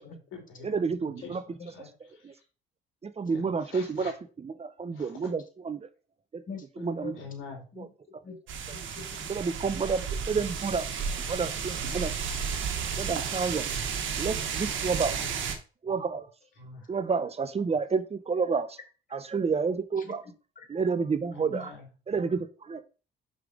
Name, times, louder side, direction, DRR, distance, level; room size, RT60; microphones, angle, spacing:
voice 1, 0.0-0.9 1.2-1.9 3.3-4.1 4.9-5.3 7.1-7.6 10.3-10.5 14.8-15.3 16.6-16.9 21.3-21.9, left 5 dB, 85° left, 1 dB, 3.0 m, -46 dB
voice 2, 0.6-1.4 2.2-2.3 3.0-4.1 4.4-5.8 6.3-6.4 6.8-7.1 7.8-7.9 9.3-10.8 11.3-12.1 13.0-13.6 14.2-15.2 15.8-16.3 16.9-18.8 19.1-20.2 20.7-21.7 22.1-22.8, right 5 dB, 30° right, 12 dB, 0.7 m, -29 dB
voice 3, 6.5-7.2 7.7-7.9 8.2-8.4 8.7-9.6 20.0-20.1 20.6-20.7 21.3-21.7, left 4 dB, 45° left, 4 dB, 1.9 m, -43 dB
sound 1, 8.5-15.5, right 6 dB, 75° right, 1.4 m, -32 dB
5.7 x 5.1 x 4.9 m, 0.34 s
cardioid pair, 90°, 20 cm